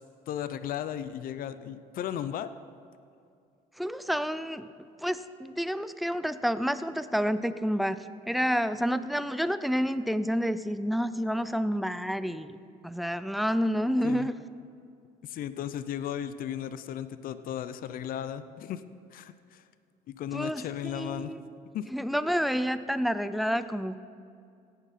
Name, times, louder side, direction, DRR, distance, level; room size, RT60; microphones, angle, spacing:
voice 1, 0.3-2.5 14.0-14.3 15.2-18.8 19.1-19.6 20.1-21.3 21.7-21.9, left 10 dB, 55° left, 12 dB, 0.5 m, -35 dB
voice 2, 3.8-4.7 5.0-12.6 12.8-14.4 20.3-21.4 21.9-24.0, equal, ahead, 13 dB, 0.4 m, -29 dB
17.0 x 9.1 x 4.2 m, 2.4 s
cardioid pair, 110°, 17 cm